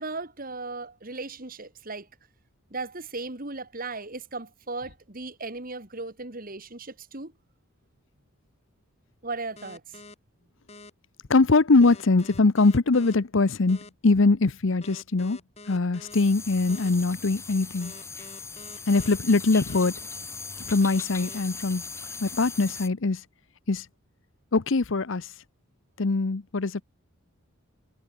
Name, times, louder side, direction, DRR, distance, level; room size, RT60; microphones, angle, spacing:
voice 1, 0.0-2.1 2.7-7.3 9.2-10.0, right 3 dB, 40° right, 2.2 m, -36 dB
sound 1, 9.6-10.1 10.7-10.9 11.8-13.2 13.7-13.9 14.8-16.2 16.7-16.9 17.8-19.2 19.7-19.9 20.8-21.4, left 3 dB, 30° left, 5.5 m, -46 dB
voice 2, 11.3-15.4 15.7-17.9 18.9-19.9 20.6-21.8 22.2-23.2 23.7-23.9 24.5-25.3 26.0-26.8, left 3 dB, 60° left, 0.8 m, -22 dB
sound 2, 16.1-22.9, left 4 dB, 15° left, 2.4 m, -39 dB
head